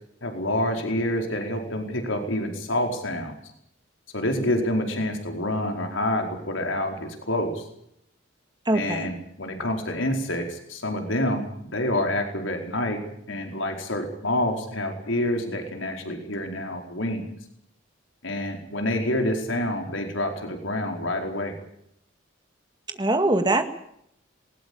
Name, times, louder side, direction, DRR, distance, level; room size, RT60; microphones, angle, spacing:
voice 1, 0.2-3.3 4.1-7.6 8.7-11.4 11.7-13.0 13.3-17.2 18.2-21.5, left 1 dB, 75° left, 4 dB, 4.7 m, -27 dB
voice 2, 8.7-9.1 23.0-23.6, right 2 dB, 20° right, 7 dB, 1.9 m, -22 dB
20.0 x 20.0 x 8.7 m, 0.74 s
head